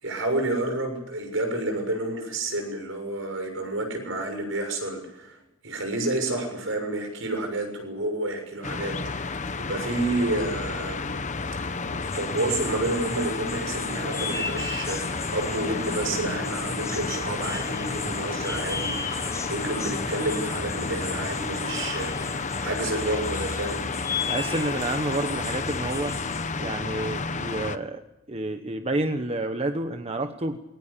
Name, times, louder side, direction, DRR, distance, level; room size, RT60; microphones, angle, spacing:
voice 1, 0.0-5.4 5.6-11.1 11.6-11.8 12.1-23.9, right 2 dB, 65° right, 5 dB, 6.7 m, -30 dB
sound 1, 8.6-27.8, left 4 dB, 35° left, 1.0 m, -31 dB
sound 2, 12.0-26.5, left 4 dB, 15° left, 3.7 m, -37 dB
sound 3, 12.7-21.0, equal, 10° right, 3.6 m, -45 dB
voice 2, 24.3-26.2 26.6-28.0 28.3-30.6, right 2 dB, 30° right, 7 dB, 1.1 m, -29 dB
22.0 x 18.5 x 8.5 m, 0.95 s
head